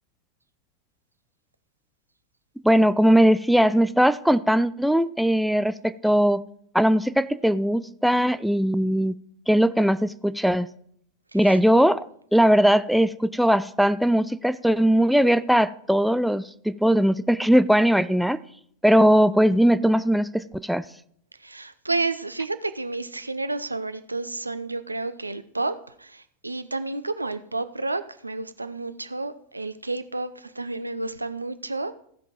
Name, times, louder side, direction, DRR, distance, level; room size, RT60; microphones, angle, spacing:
voice 1, 2.6-6.4 6.7-9.2 9.5-10.7 11.3-12.1 12.3-18.4 18.8-20.8, equal, ahead, 14 dB, 0.3 m, -20 dB
voice 2, 21.4-31.9, right 3 dB, 80° right, 12 dB, 0.5 m, -31 dB
15.5 x 5.2 x 4.5 m, 0.67 s
figure-of-eight pair, 90°, 0 cm